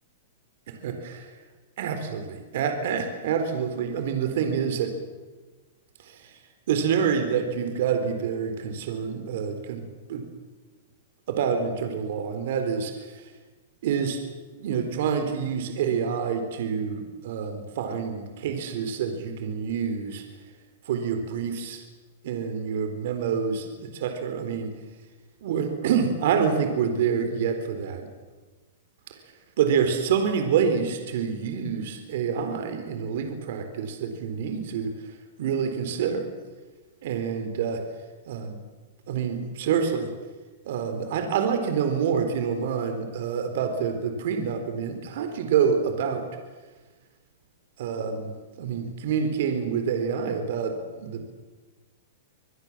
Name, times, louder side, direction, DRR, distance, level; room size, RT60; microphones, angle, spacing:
voice 1, 0.7-1.3 1.8-4.9 6.0-6.3 6.7-10.3 11.3-13.2 13.8-14.2 14.6-20.2 20.9-21.8 22.2-24.7 25.4-28.1 29.6-34.9 35.4-36.3 37.0-37.8 38.3-38.6 39.1-40.1 40.7-46.3 47.8-48.3 48.6-51.2, right 7 dB, 60° right, 7 dB, 4.1 m, -27 dB
25.5 x 20.5 x 7.5 m, 1.3 s
hypercardioid pair, 155°, 0 cm